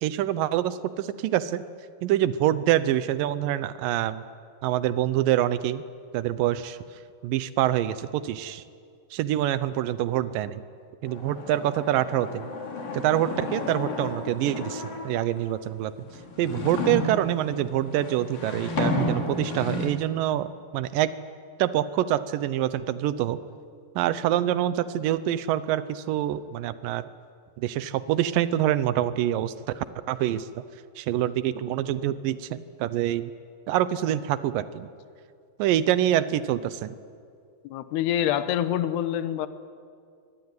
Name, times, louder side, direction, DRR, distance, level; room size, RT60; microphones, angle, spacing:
voice 1, 0.0-1.6 2.0-4.2 4.6-5.8 6.1-6.8 7.2-8.6 9.1-10.6 11.0-12.5 12.9-15.9 16.4-21.1 21.6-23.4 24.0-27.0 27.6-30.6 31.0-33.3 33.7-34.9 35.6-36.9, right 12 dB, 80° right, 14 dB, 2.0 m, -26 dB
sound 1, 11.1-15.4 16.0-19.9, left 2 dB, 55° left, 5.0 m, -32 dB
voice 2, 37.6-39.5, left 11 dB, 75° left, 12 dB, 3.0 m, -26 dB
24.0 x 21.5 x 9.6 m, 2.2 s
omnidirectional pair, 4.9 m